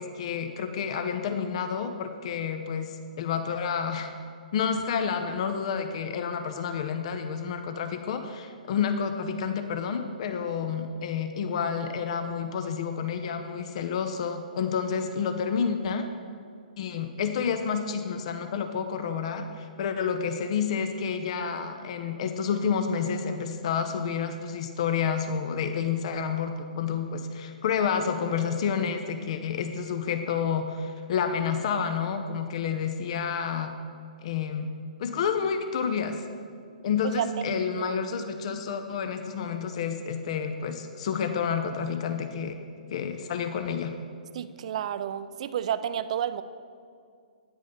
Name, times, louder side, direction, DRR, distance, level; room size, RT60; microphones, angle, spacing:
voice 1, 0.0-4.1 4.5-16.1 16.8-33.7 34.2-34.7 35.0-36.2 36.8-42.5 42.9-43.9, left 6 dB, 50° left, 7 dB, 0.5 m, -29 dB
voice 2, 37.0-38.0 44.3-46.4, right 9 dB, 50° right, 13 dB, 0.4 m, -31 dB
9.3 x 4.9 x 5.5 m, 2.3 s
figure-of-eight pair, 125°, 4 cm